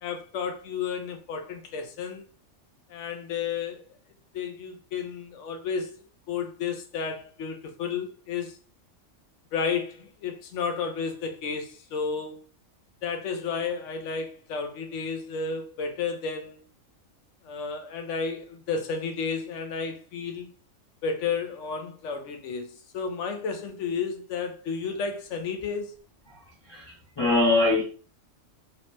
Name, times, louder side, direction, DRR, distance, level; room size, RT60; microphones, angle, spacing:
voice 1, 0.0-2.3 2.9-3.8 4.3-5.9 6.3-8.5 9.5-12.4 13.0-16.6 17.4-20.5 21.0-25.9, left 5 dB, 70° left, 1.0 m, -32 dB
voice 2, 26.7-27.8, left 2 dB, 25° left, 0.7 m, -23 dB
3.2 x 2.9 x 3.0 m
omnidirectional pair, 1.4 m